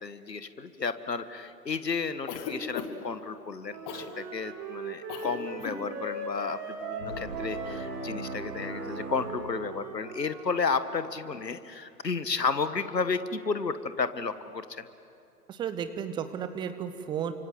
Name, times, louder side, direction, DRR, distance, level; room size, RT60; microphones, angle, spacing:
voice 1, 0.0-14.9, left 4 dB, 80° left, 12 dB, 1.6 m, -32 dB
Cough, 2.3-3.1 3.9-4.1 5.1-5.3 5.6-5.8, left 8 dB, 30° left, 2.4 m, -37 dB
Wind instrument woodwind instrument, 3.7-11.1, right 3 dB, 35° right, 4.0 m, -40 dB
sound 1, 7.0-10.3, right 3 dB, 60° right, 3.1 m, -39 dB
voice 2, 15.5-17.3, right 8 dB, 10° right, 11 dB, 0.7 m, -33 dB
30.0 x 25.0 x 8.0 m, 2.6 s
figure-of-eight pair, 115°, 49 cm